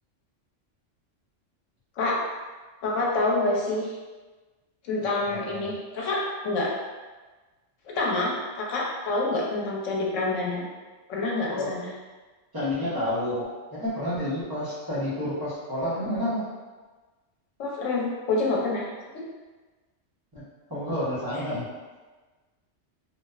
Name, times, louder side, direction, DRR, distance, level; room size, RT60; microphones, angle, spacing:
voice 1, 2.8-3.9 4.8-6.7 7.9-10.7 11.1-11.9 17.6-18.9 21.3-21.4, left 2 dB, 85° left, -3 dB, 1.0 m, -27 dB
voice 2, 5.3-5.7 11.5-11.7 12.5-13.4 13.7-16.4 20.7-21.7, left 1 dB, 30° right, -10 dB, 0.4 m, -29 dB
2.7 x 2.0 x 2.3 m, 1.3 s
omnidirectional pair, 1.3 m